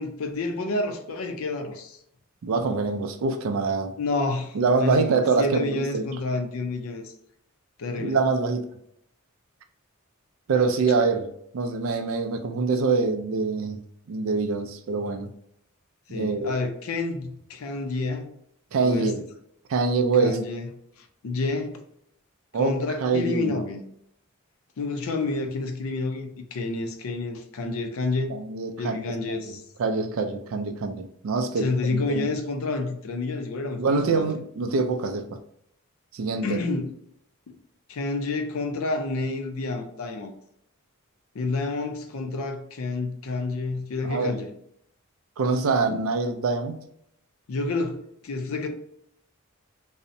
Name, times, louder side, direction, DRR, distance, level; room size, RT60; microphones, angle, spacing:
voice 1, 0.0-2.0 4.0-7.0 7.8-8.2 16.1-18.3 18.8-19.1 20.2-20.7 21.2-21.8 22.5-23.8 24.8-28.4 28.8-29.6 31.6-34.3 36.4-36.9 37.5-37.6 37.9-40.3 41.3-44.5 47.5-48.0 48.2-48.7, left 3 dB, 80° left, 0.4 m, -29 dB
voice 2, 2.4-3.9 4.5-6.1 8.0-8.6 10.5-13.8 14.1-15.3 16.1-16.7 18.7-19.2 19.7-20.4 22.5-23.7 28.3-29.2 29.5-32.3 33.8-35.4 36.1-36.6 44.0-44.4 45.4-46.8, right 4 dB, 70° right, 0.3 m, -25 dB
2.6 x 2.0 x 2.6 m
head